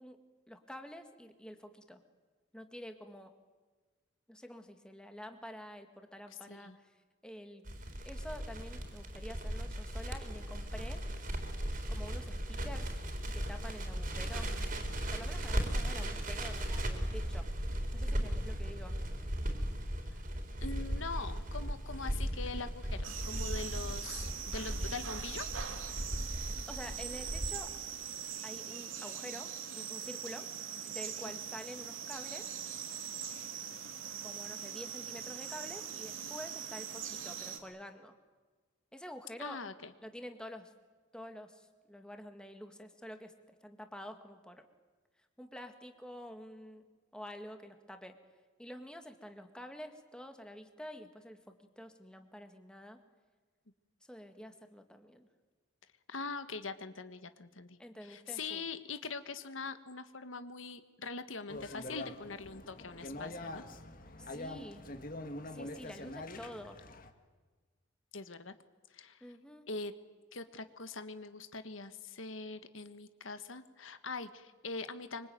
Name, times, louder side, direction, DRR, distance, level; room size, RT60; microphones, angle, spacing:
voice 1, 0.0-2.0 2.5-3.3 4.3-6.9 7.2-7.6 8.0-11.0 11.9-12.9 13.3-14.5 15.1-17.5 17.9-19.0 26.7-27.8 28.4-30.5 30.8-32.5 34.2-38.2 38.9-39.6 40.0-40.7 41.1-44.7 45.4-46.8 47.1-48.2 48.6-53.0 54.1-55.3 57.8-58.6 64.2-64.9 65.5-66.8 69.2-69.7, equal, 5° left, 6 dB, 1.9 m, -48 dB
Crackle, 7.6-27.5, equal, 45° right, 4.1 m, -37 dB
voice 2, 20.6-25.5 30.3-30.4 31.3-31.4 39.4-39.9 56.1-63.6 68.1-68.5 68.9-69.2 69.7-69.9 70.3-75.3, left 4 dB, 80° left, 11 dB, 1.5 m, -43 dB
sound 1, 23.0-37.6, right 8 dB, 85° right, 2.8 m, -42 dB
sound 2, 61.5-67.1, left 2 dB, 45° left, 1.9 m, -44 dB
25.0 x 25.0 x 9.3 m, 1.4 s
head